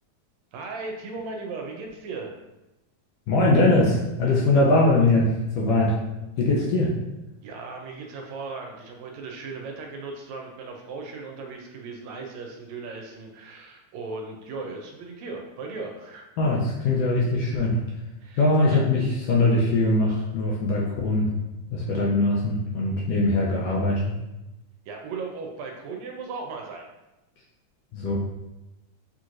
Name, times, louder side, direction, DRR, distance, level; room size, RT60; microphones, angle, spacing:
voice 1, 0.5-2.4 7.4-16.3 18.2-18.8 24.9-26.9, right 4 dB, 80° right, 2 dB, 1.7 m, -37 dB
voice 2, 3.3-6.0 6.4-6.9 16.4-17.8 18.4-21.3 21.7-24.2 27.9-28.1, left 2 dB, 75° left, -4 dB, 1.5 m, -21 dB
6.1 x 3.0 x 2.5 m, 0.98 s
omnidirectional pair, 3.3 m